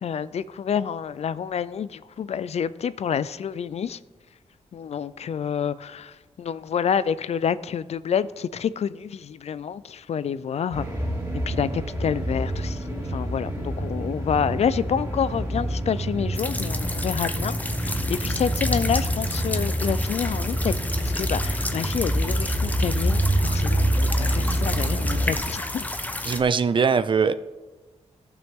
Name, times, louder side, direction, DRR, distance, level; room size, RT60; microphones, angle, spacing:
voice 1, 0.0-4.0 4.7-10.9 11.5-25.8, left 7 dB, 60° left, 0.4 m, -28 dB
sound 1, 10.7-25.4, right 1 dB, 25° right, 3.1 m, -26 dB
sound 2, 16.3-26.4, left 1 dB, 15° left, 0.7 m, -32 dB
sound 3, 17.5-25.3, right 1 dB, 10° right, 2.1 m, -44 dB
voice 2, 26.3-27.3, right 5 dB, 40° right, 0.5 m, -21 dB
14.0 x 6.0 x 3.6 m
wide cardioid pair, 100°, 12 cm